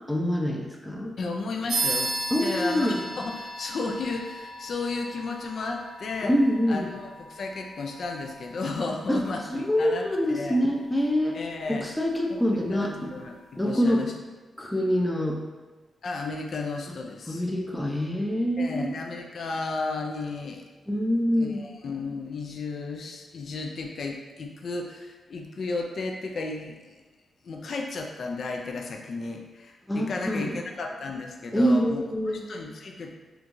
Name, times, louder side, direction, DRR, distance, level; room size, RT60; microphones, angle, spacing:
voice 1, 0.1-1.2 2.3-3.0 6.2-6.9 9.1-9.2 9.5-11.4 11.7-13.1 13.6-14.0 14.6-15.4 17.3-18.9 20.9-21.6 29.9-30.5 31.5-32.4, equal, 10° left, 0 dB, 0.6 m, -25 dB
voice 2, 1.2-6.3 6.7-10.6 11.3-11.9 12.3-12.4 12.7-14.1 16.0-17.4 18.6-20.6 21.4-27.0 27.4-33.1, left 3 dB, 60° left, 2 dB, 0.4 m, -34 dB
sound 1, 1.7-11.7, right 2 dB, 80° right, 0.8 m, -36 dB
4.4 x 2.4 x 2.6 m, 1.3 s
cardioid pair, 90°, 0 cm